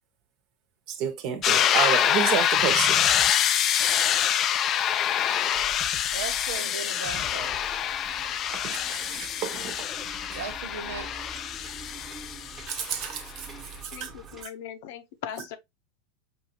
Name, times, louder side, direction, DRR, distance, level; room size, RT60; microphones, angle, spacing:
voice 1, 0.9-3.0 8.5-9.9 10.3-10.4 12.7-13.5 14.0-14.1, right 9 dB, 55° right, 1.1 m, -30 dB
sound 1, 1.4-13.1, left 10 dB, 40° left, 0.4 m, -25 dB
sound 2, 2.6-10.5, left 4 dB, 20° left, 0.9 m, -46 dB
voice 2, 6.1-7.6 10.3-11.1, right 6 dB, 85° right, 0.8 m, -37 dB
sound 3, 7.0-14.4, right 3 dB, 20° right, 1.2 m, -46 dB
voice 3, 13.9-15.6, left 9 dB, 70° left, 0.8 m, -39 dB
5.4 x 2.7 x 2.9 m
supercardioid pair, 115°, 0 cm